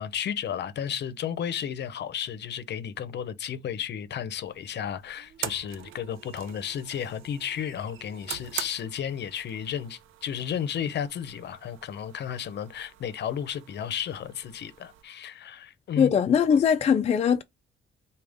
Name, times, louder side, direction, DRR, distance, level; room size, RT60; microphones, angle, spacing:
voice 1, 0.0-16.1, left 8 dB, 60° left, 0.7 m, -33 dB
sound 1, 4.4-15.0, right 11 dB, 85° right, 0.5 m, -44 dB
voice 2, 16.0-17.4, left 7 dB, 35° left, 0.4 m, -21 dB
4.9 x 2.3 x 3.5 m
cardioid pair, 90°, 20 cm